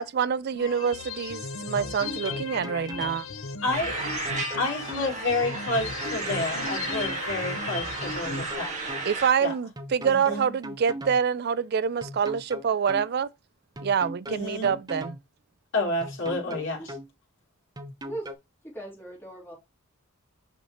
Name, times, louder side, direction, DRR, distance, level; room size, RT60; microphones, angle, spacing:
voice 1, 0.0-3.3 9.1-13.3 13.8-15.2, right 7 dB, 50° right, 0.4 m, -26 dB
sound 1, 0.6-8.6, left 5 dB, 75° left, 0.9 m, -37 dB
sound 2, 1.8-3.2 4.0-5.1 5.8-7.2 8.0-9.1 9.8-11.2 12.0-13.1 13.8-15.2 16.0-17.1 17.8-18.3, equal, 20° right, 0.7 m, -38 dB
voice 2, 3.6-4.0 4.6-8.7 9.4-9.5 10.0-10.5 14.3-14.7 15.7-16.9, left 2 dB, 60° left, 3.1 m, -30 dB
sound 3, 3.7-9.3, right 3 dB, 35° right, 1.7 m, -33 dB
voice 3, 18.7-19.5, right 2 dB, 10° left, 3.5 m, -38 dB
5.8 x 5.6 x 2.9 m
head